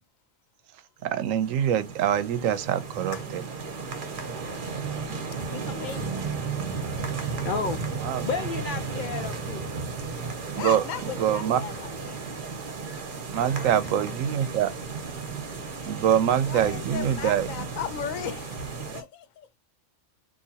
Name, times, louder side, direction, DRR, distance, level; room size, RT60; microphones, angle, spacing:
voice 1, 1.0-3.4 8.0-8.3 10.6-10.8 11.2-11.7 13.3-14.7 15.9-17.7, right 9 dB, 85° right, 1.0 m, -25 dB
sound 1, 1.1-19.0, right 4 dB, 45° right, 0.9 m, -34 dB
voice 2, 5.5-6.2 10.6-12.2 16.4-19.5, left 9 dB, 85° left, 1.1 m, -36 dB
voice 3, 7.4-7.8 8.2-9.7 13.4-14.1, left 5 dB, 65° left, 0.5 m, -32 dB
3.9 x 2.6 x 2.8 m
omnidirectional pair, 1.3 m